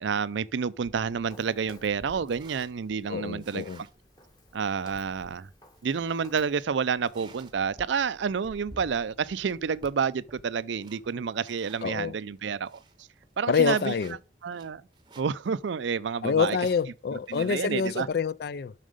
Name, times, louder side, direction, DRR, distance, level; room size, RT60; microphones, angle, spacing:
voice 1, 0.0-3.6 4.5-5.5 5.8-12.8 13.4-13.9 14.4-14.8 15.2-16.6 17.3-18.1, right 6 dB, 80° right, 0.4 m, -29 dB
sound 1, 0.8-12.0 12.4-12.5 12.7-15.5 15.8-15.9 16.6-18.1, right 2 dB, 25° right, 0.7 m, -52 dB
Walk footsteps, 1.3-6.6, left 1 dB, 20° left, 1.1 m, -57 dB
voice 2, 3.1-3.8 11.8-12.1 13.5-14.1 16.2-18.7, left 6 dB, 55° left, 0.3 m, -27 dB
7.4 x 6.3 x 5.1 m
head